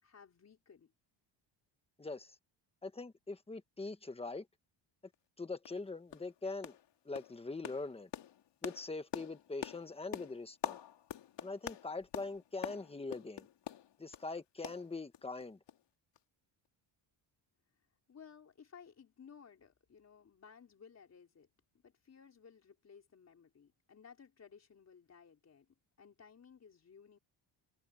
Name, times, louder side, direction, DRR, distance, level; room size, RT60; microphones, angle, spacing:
voice 1, 0.0-0.9 18.1-21.5 21.8-27.2, left 6 dB, 35° left, 4.5 m, -58 dB
voice 2, 2.0-2.4 2.8-4.5 5.4-6.7 7.0-8.1 8.6-10.8 11.4-13.5 14.0-15.6, left 3 dB, 10° left, 1.3 m, -42 dB
sound 1, 5.1-5.2 5.7-5.8 6.1-6.3 6.6-6.9 7.2-14.3 14.6-15.4 15.7-15.8 16.2-16.3, left 10 dB, 60° left, 2.2 m, -45 dB
cardioid pair, 155°, 47 cm